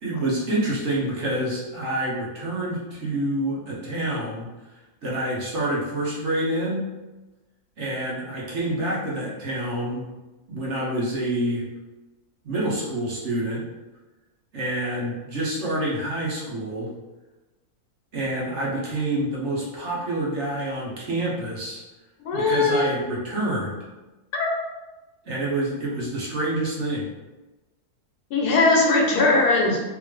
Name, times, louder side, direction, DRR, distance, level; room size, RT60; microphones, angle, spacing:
voice 1, 0.0-4.5 5.0-6.9 7.8-10.1 10.5-11.6 12.4-13.6 14.5-16.9 18.1-21.8 22.3-23.8 25.2-27.1, right 1 dB, 55° right, -5 dB, 1.1 m, -27 dB
voice 2, 22.2-22.9 24.3-24.5 28.3-29.8, left 3 dB, 90° left, 0 dB, 1.3 m, -20 dB
3.6 x 2.7 x 3.2 m, 1.1 s
omnidirectional pair, 1.6 m